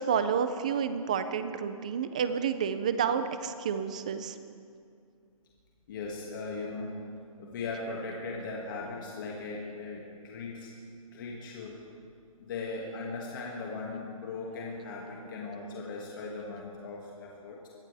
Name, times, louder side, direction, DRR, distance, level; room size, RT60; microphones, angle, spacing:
voice 1, 0.0-4.4, right 7 dB, 10° right, 11 dB, 0.3 m, -30 dB
voice 2, 5.9-7.0 7.4-10.8 11.1-11.8 12.4-17.7, left 3 dB, 35° left, -2 dB, 2.1 m, -38 dB
23.0 x 17.5 x 3.4 m, 2.3 s
hypercardioid pair, 165°, 18 cm